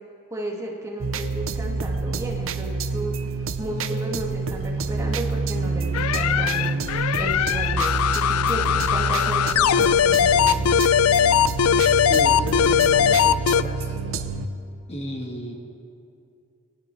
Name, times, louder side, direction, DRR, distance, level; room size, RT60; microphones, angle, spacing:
voice 1, 0.3-3.1 3.6-6.8 7.2-10.6, equal, 15° right, -2 dB, 1.9 m, -33 dB
sound 1, 1.0-14.5, right 4 dB, 65° right, 0.7 m, -27 dB
sound 2, 5.9-13.6, left 8 dB, 90° left, 0.4 m, -20 dB
voice 2, 12.1-14.0 14.9-15.5, left 1 dB, 30° left, 1 dB, 1.4 m, -33 dB
22.0 x 17.5 x 3.3 m, 2.6 s
head